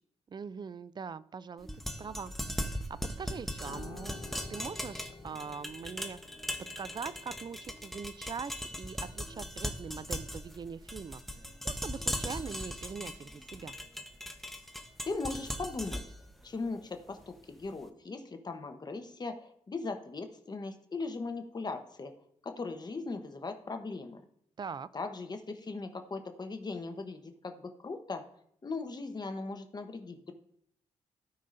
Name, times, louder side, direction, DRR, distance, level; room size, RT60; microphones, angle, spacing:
voice 1, 0.3-1.7 2.0-2.9 3.2-6.5 6.8-11.2 11.6-13.8 24.6-24.9, right 6 dB, 40° right, 17 dB, 0.4 m, -42 dB
sound 1, 1.6-17.7, equal, ahead, 0.9 m, -39 dB
Piano, 3.6-13.0 13.3-13.6, left 4 dB, 80° left, 0.9 m, -54 dB
voice 2, 15.0-16.0 16.4-22.1 22.4-24.2 24.9-28.2 28.6-30.3, left 3 dB, 35° left, 7 dB, 0.9 m, -39 dB
16.0 x 5.5 x 2.6 m, 0.70 s
cardioid pair, 80°, 12 cm